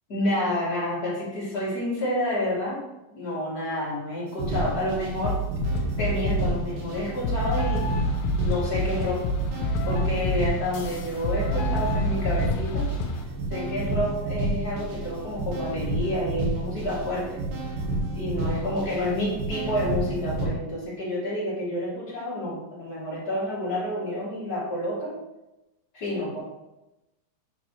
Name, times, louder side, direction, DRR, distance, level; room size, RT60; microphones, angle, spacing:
voice 1, 0.1-2.8 3.1-5.4 6.0-7.9 8.4-9.3 9.8-12.9 13.5-17.4 18.1-25.2 25.9-26.4, left 1 dB, 30° left, -8 dB, 1.9 m, -29 dB
sound 1, 4.3-20.5, right 1 dB, 75° right, 3.1 m, -30 dB
sound 2, 5.2-6.5 7.2-13.2, left 1 dB, 80° left, 2.4 m, -28 dB
7.7 x 5.0 x 3.1 m, 0.99 s
omnidirectional pair, 4.4 m